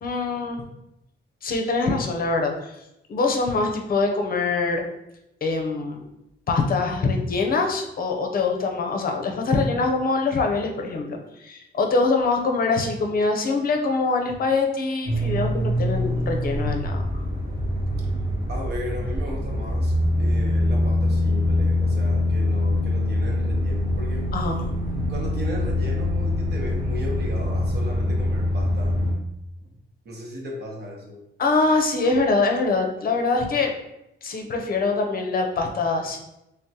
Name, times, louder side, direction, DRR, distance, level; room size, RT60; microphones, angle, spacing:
voice 1, 0.0-0.6 1.4-2.7 3.1-4.8 5.4-6.0 6.5-17.0 24.3-24.7 31.4-33.7 34.2-36.2, left 3 dB, 45° left, 3 dB, 0.6 m, -24 dB
sound 1, 15.1-29.1, left 1 dB, 25° right, 1.0 m, -24 dB
voice 2, 18.5-24.3 25.1-28.9 29.6-29.7 30.0-31.2, equal, 55° right, -1 dB, 1.0 m, -36 dB
3.6 x 3.4 x 2.8 m, 0.87 s
wide cardioid pair, 165°, 21 cm